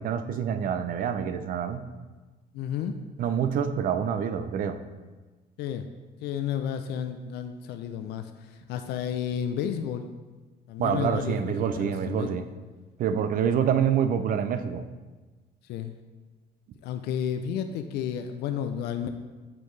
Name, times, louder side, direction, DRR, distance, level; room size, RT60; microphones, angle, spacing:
voice 1, 0.0-1.8 3.2-4.8 10.8-12.5 13.0-14.8, right 8 dB, 55° right, 10 dB, 0.5 m, -26 dB
voice 2, 2.5-3.0 5.6-5.8 6.2-10.1 10.7-12.4 15.7-15.9 16.8-19.1, left 8 dB, 75° left, 8 dB, 0.4 m, -32 dB
8.5 x 4.5 x 3.2 m, 1.3 s
cardioid pair, 110°, 17 cm